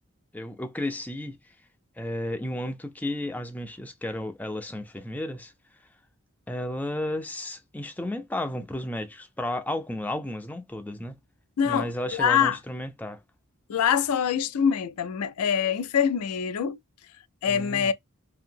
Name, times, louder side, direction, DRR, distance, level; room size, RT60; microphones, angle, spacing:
voice 1, 0.3-1.4 2.0-5.5 6.5-11.2 11.6-13.2 17.5-17.9, left 1 dB, 5° left, 0.3 m, -33 dB
voice 2, 11.6-12.6 13.7-16.8 17.4-17.9, left 7 dB, 85° left, 0.4 m, -24 dB
2.7 x 2.7 x 2.5 m
head